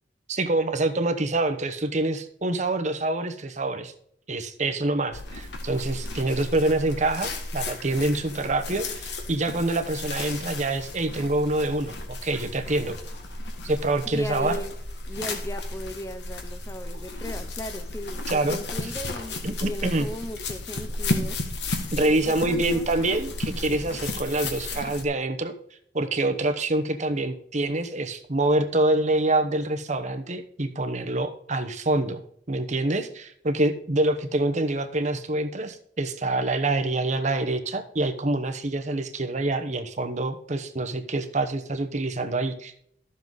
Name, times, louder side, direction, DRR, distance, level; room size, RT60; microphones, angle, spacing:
voice 1, 0.3-3.9 4.3-11.9 12.2-13.0 13.6-14.6 18.3-18.6 19.4-20.1 21.9-25.5 25.9-32.2 32.5-42.7, right 2 dB, 40° right, 8 dB, 1.0 m, -26 dB
sound 1, 5.1-25.0, left 2 dB, 65° left, 1.7 m, -34 dB
voice 2, 14.1-14.7 15.1-21.4 21.9-22.8, left 1 dB, 15° left, 10 dB, 0.5 m, -37 dB
12.5 x 7.4 x 4.0 m, 0.65 s
head